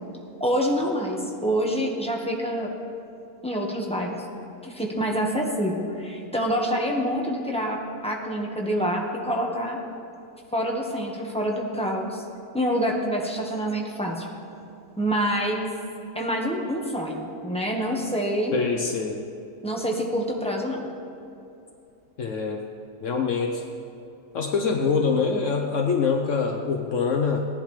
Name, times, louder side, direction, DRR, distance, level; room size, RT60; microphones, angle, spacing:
voice 1, 0.4-2.7 3.4-4.2 4.6-9.8 10.5-12.2 12.5-14.3 15.0-15.7 16.1-18.5 19.6-20.9, equal, 5° left, -1 dB, 1.3 m, -26 dB
voice 2, 18.5-19.2 22.2-22.6 23.0-23.6 24.3-27.5, left 5 dB, 65° left, 3 dB, 1.1 m, -24 dB
18.0 x 10.5 x 3.3 m, 2.7 s
omnidirectional pair, 1.5 m